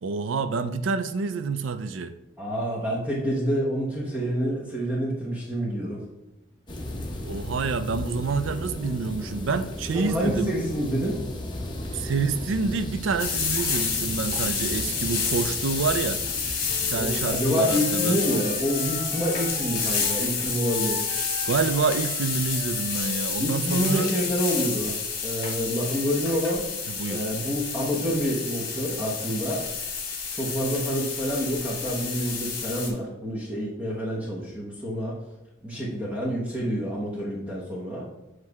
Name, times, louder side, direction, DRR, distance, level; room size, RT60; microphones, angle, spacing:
voice 1, 0.0-2.1 7.2-10.5 11.9-16.2 16.9-18.2 21.5-24.1 26.9-27.2, right 4 dB, 85° right, 0.4 m, -27 dB
voice 2, 2.4-6.0 9.9-11.2 17.0-21.0 23.4-25.0 25.2-26.6 27.1-29.6 30.3-35.2 35.6-38.1, equal, 10° right, 1.0 m, -27 dB
sound 1, 6.7-17.4, left 1 dB, 25° left, 0.9 m, -35 dB
sound 2, 13.2-32.9, left 5 dB, 50° left, 1.4 m, -29 dB
Wind instrument woodwind instrument, 16.7-20.3 20.6-24.3, left 1 dB, 35° right, 2.1 m, -40 dB
7.4 x 3.2 x 4.7 m
head